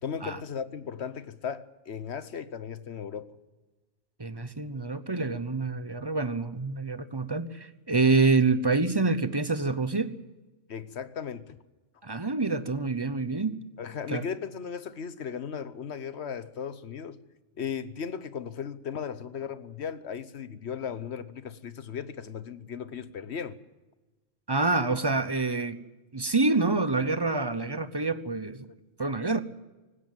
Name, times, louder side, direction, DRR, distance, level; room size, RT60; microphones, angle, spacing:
voice 1, 0.0-3.3 10.7-11.6 13.8-17.2 17.6-23.6, left 7 dB, 60° left, 14 dB, 1.2 m, -36 dB
voice 2, 4.2-10.2 12.0-13.6 14.1-14.2 24.5-25.8 26.1-28.7 29.0-29.4, right 3 dB, 25° right, 13 dB, 0.8 m, -27 dB
19.0 x 16.5 x 9.2 m, 1.2 s
omnidirectional pair, 1.3 m